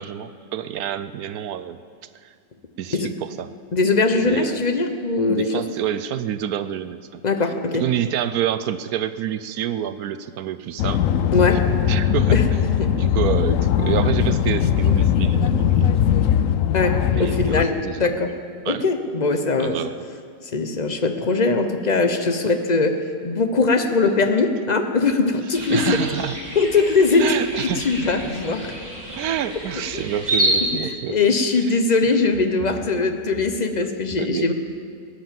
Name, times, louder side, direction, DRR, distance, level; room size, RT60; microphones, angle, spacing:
voice 1, 0.0-1.8 2.2-2.3 2.8-3.5 4.2-4.6 5.3-7.2 7.8-11.0 11.9-12.6 12.9-15.9 17.1-18.1 18.7-18.8 19.6-20.0 25.7-26.4 27.2-27.9 29.2-31.2 31.6-31.7 34.2-34.5, right 10 dB, 70° right, 12 dB, 0.9 m, -27 dB
voice 2, 3.7-5.6 7.2-7.8 11.3-11.6 12.3-12.4 12.7-12.9 16.7-18.3 18.7-19.8 20.5-26.0 26.5-28.7 29.9-30.0 30.7-34.5, left 3 dB, 40° left, 7 dB, 0.6 m, -21 dB
sound 1, 10.8-17.7, left 9 dB, 70° left, 0.7 m, -20 dB
sound 2, 25.5-30.6, right 1 dB, 20° right, 2.8 m, -28 dB
17.5 x 10.5 x 7.4 m, 2.2 s
omnidirectional pair, 2.0 m